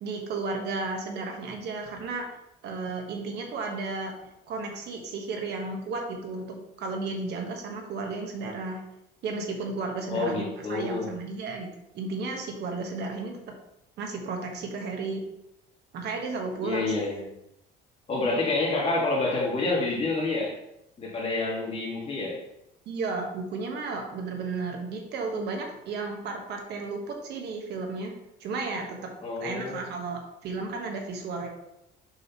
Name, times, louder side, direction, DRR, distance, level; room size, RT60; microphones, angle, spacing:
voice 1, 0.0-2.2 2.6-4.1 4.5-8.8 9.2-11.7 11.9-13.4 14.0-15.2 15.9-17.1 22.9-28.1 28.4-29.1 29.4-31.5, right 3 dB, 60° right, 2 dB, 1.4 m, -33 dB
voice 2, 10.1-11.1 16.6-17.2 18.1-20.5 21.0-22.4 29.2-29.8, left 3 dB, 30° left, -3 dB, 2.2 m, -28 dB
6.4 x 6.3 x 3.1 m, 0.84 s
cardioid pair, 140°, 19 cm